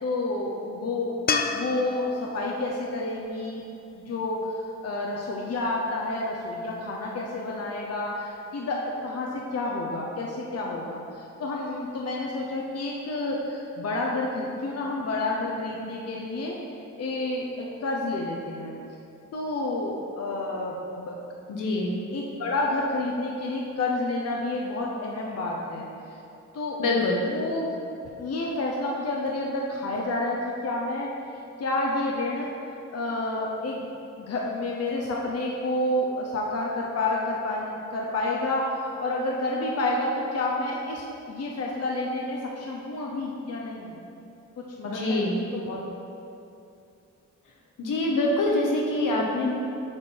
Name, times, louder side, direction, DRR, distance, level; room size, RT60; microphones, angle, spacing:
voice 1, 0.0-1.2 1.5-3.6 4.0-16.6 17.0-18.7 19.3-21.2 21.7-21.9 22.1-26.2 26.5-26.8 27.2-27.7 28.2-31.1 31.6-32.5 32.9-33.8 34.2-44.0 44.8-45.8, left 2 dB, 50° left, -2 dB, 0.8 m, -29 dB
sound 1, 1.3-4.5 7.8-7.9, left 5 dB, 30° left, 0.4 m, -32 dB
voice 2, 21.5-22.0 26.8-27.2 44.8-45.4 47.8-49.5, left 2 dB, 80° left, -2 dB, 1.3 m, -25 dB
7.4 x 4.4 x 4.5 m, 2.8 s
cardioid pair, 85°, 31 cm